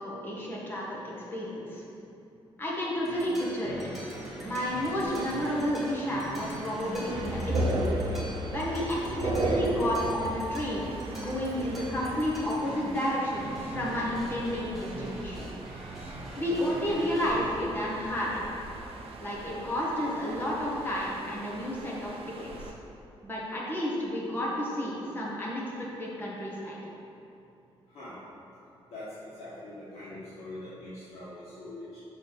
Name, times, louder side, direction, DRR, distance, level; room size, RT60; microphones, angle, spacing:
voice 1, 0.0-1.8 2.6-3.8 4.4-7.8 8.5-15.5 16.3-18.5 19.2-22.1 22.4-22.7 23.2-25.6 26.0-26.8, equal, 20° left, -5 dB, 1.5 m, -31 dB
sound 1, 3.0-17.5, right 1 dB, ahead, 1.6 m, -43 dB
sound 2, 4.6-22.7, right 3 dB, 65° right, 0.7 m, -45 dB
sound 3, 7.1-12.4, right 1 dB, 40° right, 0.9 m, -32 dB
voice 2, 28.9-32.0, left 1 dB, 80° left, -12 dB, 1.9 m, -43 dB
6.9 x 4.3 x 6.5 m, 2.7 s
wide cardioid pair, 160°, 10 cm